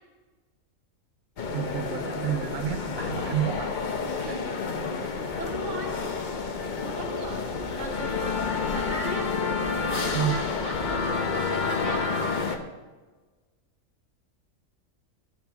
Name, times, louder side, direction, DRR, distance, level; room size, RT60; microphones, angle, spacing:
sound 1, 1.4-12.6, left 4 dB, 45° left, 0.7 m, -29 dB
voice 1, 1.5-3.7 4.2-4.4 10.1-10.4, right 11 dB, 80° right, 1 dB, 1.2 m, -30 dB
sound 2, 5.0-11.8, left 1 dB, 65° left, 2.8 m, -45 dB
voice 2, 5.3-6.0 6.8-9.3 9.9-12.0, right 2 dB, 60° right, 0 dB, 1.9 m, -38 dB
12.5 x 7.0 x 4.6 m, 1.3 s
omnidirectional pair, 1.4 m